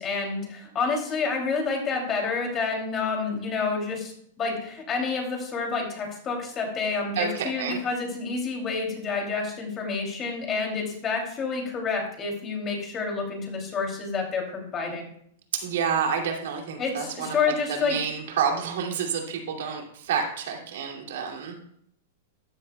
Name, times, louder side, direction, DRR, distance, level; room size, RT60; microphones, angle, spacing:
voice 1, 0.0-4.1 4.4-15.0 16.8-18.0, left 4 dB, 25° left, 1 dB, 3.0 m, -29 dB
voice 2, 7.2-7.8 15.5-21.5, right 7 dB, 75° right, 1 dB, 2.7 m, -29 dB
14.0 x 10.5 x 2.3 m, 0.69 s
supercardioid pair, 150°, 0 cm